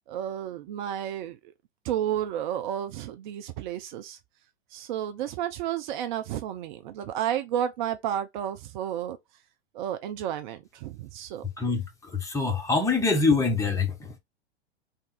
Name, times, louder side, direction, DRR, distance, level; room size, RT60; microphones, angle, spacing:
voice 1, 0.1-1.4 1.8-4.2 4.7-9.2 9.7-11.4, right 10 dB, 45° right, 0.6 m, -31 dB
voice 2, 12.2-14.2, left 4 dB, 10° left, 1.0 m, -24 dB
3.5 x 2.6 x 4.0 m
figure-of-eight pair, 105°, 33 cm